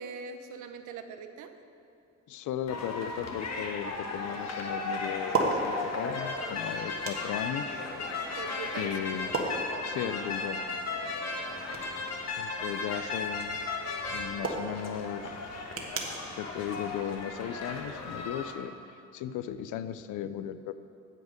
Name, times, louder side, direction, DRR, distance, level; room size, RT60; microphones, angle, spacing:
voice 1, 0.0-1.5 8.4-8.9, right 5 dB, 85° right, 8 dB, 0.7 m, -41 dB
voice 2, 2.3-7.7 8.7-9.3 9.8-10.6 12.4-13.6 14.1-15.6 16.3-18.8 19.1-20.7, left 10 dB, 80° left, 13 dB, 0.5 m, -36 dB
sound 1, 2.6-17.8, right 3 dB, 50° right, 1.4 m, -39 dB
sound 2, 2.7-18.5, left 3 dB, 60° left, 1.2 m, -36 dB
9.8 x 7.4 x 5.1 m, 2.6 s
cardioid pair, 90°, 30 cm